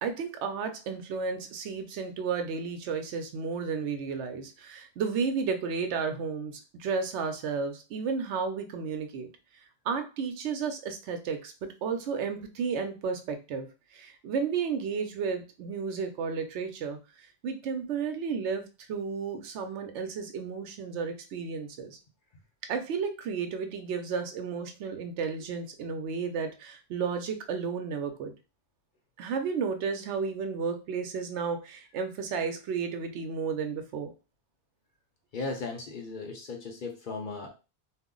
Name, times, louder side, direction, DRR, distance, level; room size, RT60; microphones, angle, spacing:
voice 1, 0.0-9.3 9.9-17.0 17.4-18.6 18.9-22.0 22.7-28.3 29.2-34.1, right 5 dB, 85° right, 7 dB, 0.9 m, -32 dB
voice 2, 35.3-37.5, left 3 dB, 55° left, 3 dB, 0.6 m, -36 dB
2.4 x 2.0 x 3.6 m, 0.30 s
omnidirectional pair, 1.1 m